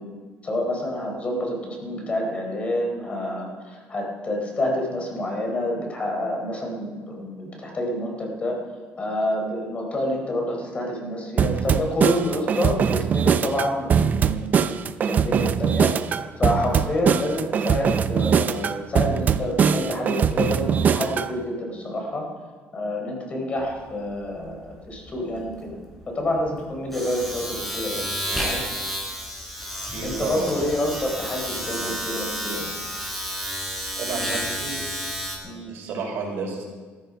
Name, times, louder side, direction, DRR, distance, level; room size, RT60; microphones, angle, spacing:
voice 1, 0.0-8.6 9.0-14.8 15.0-15.9 16.4-22.2 22.7-25.8 26.1-28.6 29.7-32.7 35.4-35.7, left 1 dB, 30° left, 1 dB, 4.0 m, -28 dB
sound 1, 11.4-21.3, right 7 dB, 40° right, 0.6 m, -22 dB
Domestic sounds home sounds, 23.6-23.8 24.1-35.4, equal, 5° left, 4.6 m, -31 dB
voice 2, 29.9-30.7 34.0-34.8 35.7-36.7, right 4 dB, 70° right, 0 dB, 4.8 m, -31 dB
15.0 x 14.0 x 5.2 m, 1.4 s
cardioid pair, 130°, 4 cm